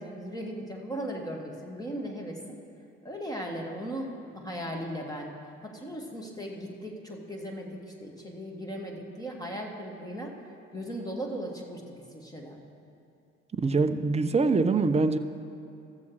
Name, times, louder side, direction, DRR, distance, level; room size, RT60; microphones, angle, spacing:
voice 1, 0.0-2.6 3.0-5.3 5.6-10.3 10.7-11.8 12.1-12.6, equal, 10° left, 0 dB, 1.8 m, -37 dB
voice 2, 13.5-15.2, right 4 dB, 20° right, 9 dB, 0.6 m, -24 dB
14.0 x 7.0 x 4.8 m, 2.6 s
hypercardioid pair, 55°, 36 cm